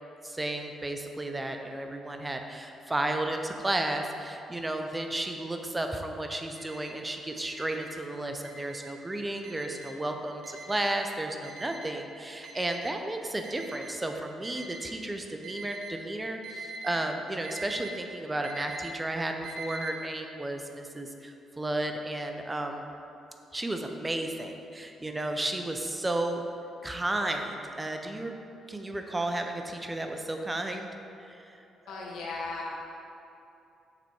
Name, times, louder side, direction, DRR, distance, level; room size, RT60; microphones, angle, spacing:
voice 1, 0.2-22.8 23.5-26.4 26.8-28.3 28.7-30.9 31.2-32.0, right 1 dB, 15° right, 4 dB, 0.5 m, -33 dB
Alarm, 6.6-6.9 7.4-7.9 8.4-8.9 9.4-9.9 10.4-10.9 11.4-11.9 12.4-12.9 13.4-13.9 14.4-14.9 15.4-15.9 16.4-16.9 17.4-17.9 18.4-18.9 19.4-19.9, right 4 dB, 80° right, 0.9 m, -42 dB
voice 2, 31.9-32.7, left 3 dB, 85° left, -3 dB, 1.3 m, -36 dB
6.6 x 4.2 x 4.7 m, 2.8 s
cardioid pair, 90°, 0 cm